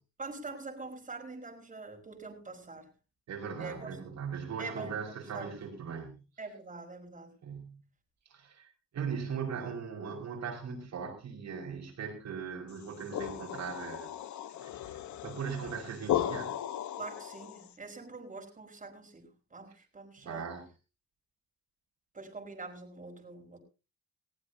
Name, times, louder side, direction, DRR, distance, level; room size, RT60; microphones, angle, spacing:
voice 1, 0.2-2.9 3.6-4.0 4.6-5.5 6.4-7.4 17.0-20.5 22.1-23.6, right 3 dB, 25° right, 2 dB, 5.1 m, -44 dB
voice 2, 3.3-6.1 7.4-7.8 8.3-8.7 8.9-14.1 14.6-14.9 15.2-16.5 20.2-20.6, right 6 dB, 65° right, 1 dB, 5.3 m, -39 dB
sound 1, 12.8-17.7, left 11 dB, 70° left, 1.3 m, -36 dB
20.0 x 15.0 x 2.8 m, 0.32 s
cardioid pair, 90°, 30 cm